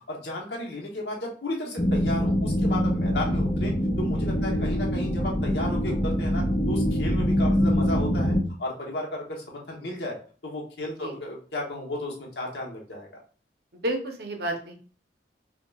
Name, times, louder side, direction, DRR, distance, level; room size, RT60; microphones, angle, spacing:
voice 1, 0.1-10.2 10.4-13.1, left 1 dB, 70° left, -1 dB, 0.9 m, -34 dB
sound 1, 1.8-8.4, equal, 20° left, 0.4 m, -24 dB
voice 2, 4.4-4.8 11.0-11.1 13.7-14.7, right 1 dB, 60° right, 3 dB, 0.7 m, -32 dB
4.5 x 2.2 x 2.3 m, 0.41 s
head